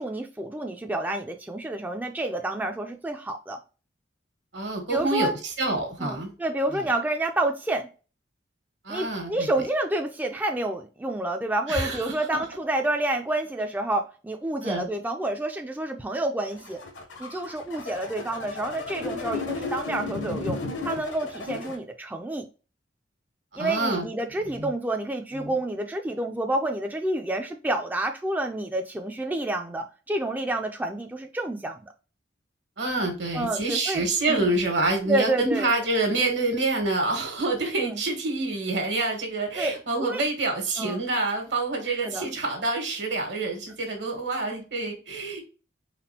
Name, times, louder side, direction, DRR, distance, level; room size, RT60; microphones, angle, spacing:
voice 1, 0.0-3.6 4.9-5.3 6.0-7.9 8.9-16.8 17.2-20.6 20.8-22.5 23.6-31.9 33.3-34.0 34.3-34.5 35.1-35.7 37.8-38.0 39.6-39.7 40.0-40.2 40.8-41.0 41.9-42.3, right 1 dB, 10° right, 0.3 m, -29 dB
voice 2, 4.5-5.3 5.6-6.3 6.7-6.8 8.8-9.5 11.7-12.0 14.6-14.8 23.5-24.0 24.4-24.7 25.3-25.6 32.8-45.4, right 2 dB, 75° right, 1.4 m, -27 dB
sound 1, 16.5-21.8, left 3 dB, 80° left, 1.0 m, -34 dB
4.1 x 3.7 x 2.7 m
head